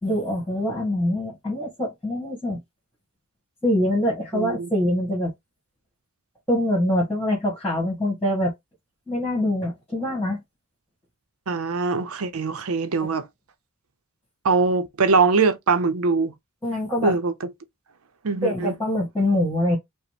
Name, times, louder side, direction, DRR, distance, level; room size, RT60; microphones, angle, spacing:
voice 1, 0.0-2.6 3.6-5.3 6.5-8.5 9.1-10.4 16.6-17.1 18.4-19.8, left 1 dB, 10° left, 1.6 m, -24 dB
voice 2, 4.3-4.7 11.5-13.3 14.4-16.3 17.0-17.3 18.2-18.7, right 4 dB, 75° right, 0.6 m, -22 dB
4.9 x 2.0 x 3.3 m
head